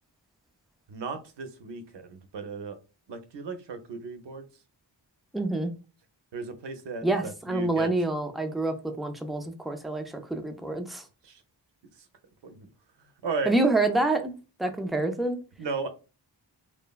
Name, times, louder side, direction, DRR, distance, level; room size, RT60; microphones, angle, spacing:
voice 1, 0.9-2.8 3.1-4.5 6.3-7.9 11.2-11.4 12.0-12.1 12.4-12.7 13.2-13.5 15.6-15.9, right 4 dB, 70° right, 8 dB, 0.6 m, -35 dB
voice 2, 5.3-5.7 7.0-11.0 13.5-15.4, right 2 dB, ahead, 6 dB, 0.3 m, -27 dB
3.2 x 2.0 x 2.2 m, 0.32 s
cardioid pair, 50°, 45 cm